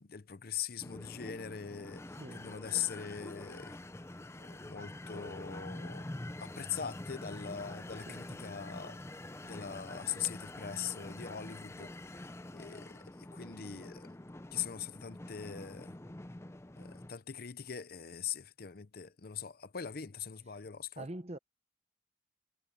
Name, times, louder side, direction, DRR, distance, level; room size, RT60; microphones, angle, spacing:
voice 1, 0.0-3.8 4.4-6.1 6.4-9.0 9.4-14.1 14.5-15.9 16.8-21.1, left 8 dB, 55° left, 0.7 m, -41 dB
sound 1, 0.8-17.1, left 1 dB, 15° left, 0.5 m, -46 dB
voice 2, 2.2-2.6 8.1-8.4 21.0-21.4, right 1 dB, 35° right, 1.0 m, -44 dB
head